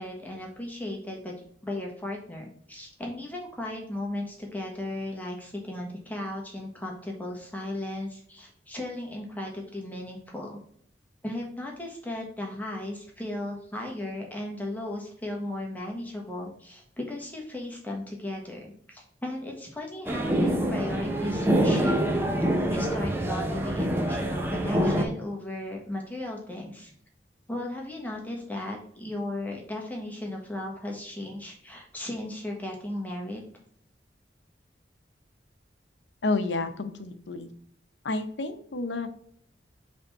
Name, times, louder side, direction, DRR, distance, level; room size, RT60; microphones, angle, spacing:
voice 1, 0.0-1.3 1.6-10.6 11.2-22.0 22.7-26.9 27.5-33.4, left 1 dB, 10° left, 0 dB, 1.4 m, -36 dB
sound 1, 20.1-25.1, right 1 dB, 15° right, 0.8 m, -25 dB
voice 2, 36.2-37.5 38.0-39.1, left 3 dB, 90° left, 9 dB, 0.8 m, -30 dB
5.2 x 3.6 x 5.5 m, 0.62 s
head